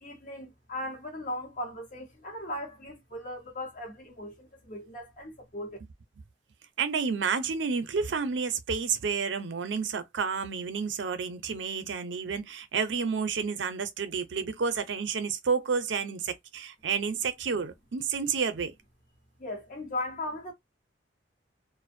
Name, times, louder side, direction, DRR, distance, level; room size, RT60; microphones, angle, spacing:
voice 1, 0.0-5.8 19.4-20.5, left 1 dB, 45° left, 0.8 m, -38 dB
voice 2, 6.8-18.7, right 5 dB, 75° right, 0.5 m, -30 dB
2.5 x 2.0 x 2.5 m
head